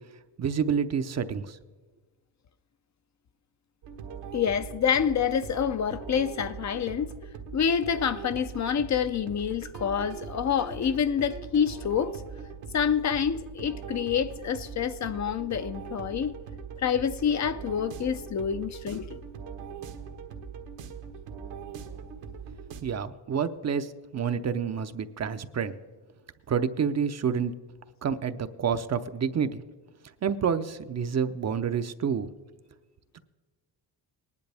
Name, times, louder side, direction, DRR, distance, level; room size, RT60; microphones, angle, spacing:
voice 1, 0.4-1.6 22.8-25.8 26.5-27.5 28.0-29.6 30.2-32.3 33.1-33.2, right 7 dB, 40° right, 0.7 m, -28 dB
sound 1, 3.8-22.8, right 6 dB, 80° right, 1.5 m, -41 dB
voice 2, 4.3-7.1 7.5-12.2 12.7-16.3 16.8-19.2, left 7 dB, 40° left, 0.6 m, -27 dB
19.0 x 10.5 x 3.4 m
cardioid pair, 95°, 43 cm